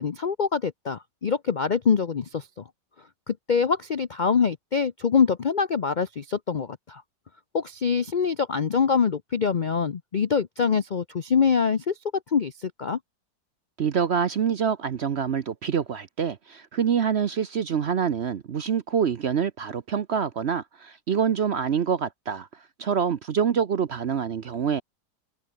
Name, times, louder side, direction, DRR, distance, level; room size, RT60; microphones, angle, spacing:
voice 1, 0.0-2.5 3.3-7.0 7.5-12.0 12.3-13.0, left 6 dB, 60° left, 0.4 m, -24 dB
voice 2, 13.8-22.5 22.8-24.8, right 7 dB, 50° right, 0.8 m, -26 dB
open air
omnidirectional pair, 1.8 m